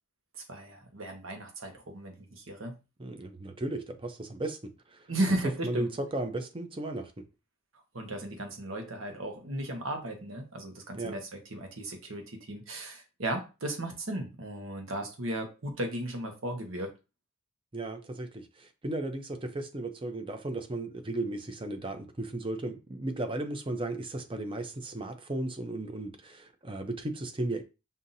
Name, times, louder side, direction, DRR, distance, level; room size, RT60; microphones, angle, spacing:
voice 1, 0.5-2.7 5.1-5.9 7.9-16.9, right 1 dB, 75° right, 1.2 m, -35 dB
voice 2, 3.0-5.0 5.6-7.1 10.9-11.2 17.7-27.6, right 2 dB, 25° right, 0.6 m, -35 dB
5.6 x 2.8 x 2.6 m
head